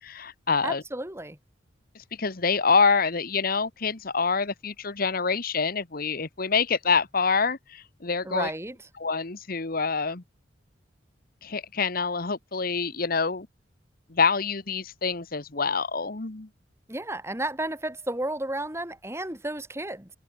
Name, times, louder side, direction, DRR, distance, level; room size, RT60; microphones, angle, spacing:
voice 1, 0.0-0.8 2.1-8.5 9.0-10.2 11.4-13.5 14.1-16.5, left 5 dB, 50° left, 1.2 m, -26 dB
voice 2, 0.6-1.4 8.2-8.8 16.9-20.1, right 1 dB, 15° right, 3.6 m, -32 dB
head